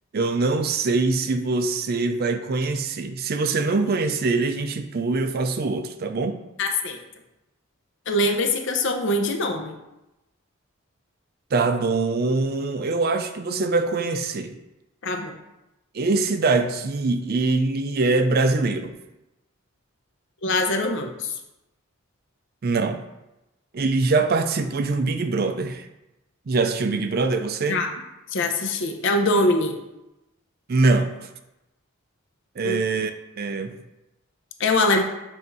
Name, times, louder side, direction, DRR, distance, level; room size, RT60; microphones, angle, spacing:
voice 1, 0.1-6.4 11.5-14.6 15.9-18.9 22.6-23.0 23.7-25.9 26.5-27.8 30.7-31.3 32.6-33.1 33.4-33.8, right 3 dB, 45° right, 8 dB, 0.4 m, -23 dB
voice 2, 6.6-7.0 8.1-9.8 15.0-15.4 20.4-21.3 27.7-27.9 28.3-29.8 32.6-32.8 34.6-35.0, left 2 dB, 60° left, 5 dB, 0.7 m, -23 dB
7.7 x 2.7 x 4.6 m, 0.95 s
head